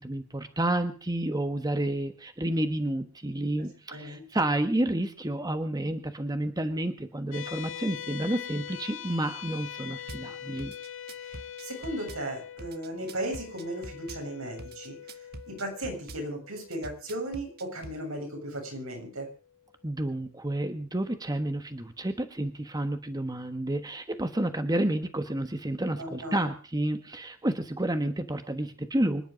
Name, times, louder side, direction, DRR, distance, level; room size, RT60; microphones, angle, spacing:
voice 1, 0.0-10.7 19.8-29.2, right 1 dB, 20° right, 8 dB, 1.3 m, -30 dB
voice 2, 3.9-4.3 11.2-15.0 15.5-19.3 26.0-26.5, right 1 dB, 80° right, 3 dB, 7.9 m, -36 dB
sound 1, 7.3-20.0, left 10 dB, 65° left, 1.6 m, -44 dB
Drum kit / Bass drum, 10.1-10.3 10.6-12.2 12.6-14.2 14.6-16.2 16.7-18.0, right 2 dB, 50° right, 1.2 m, -44 dB
25.5 x 10.5 x 5.2 m, 0.39 s
head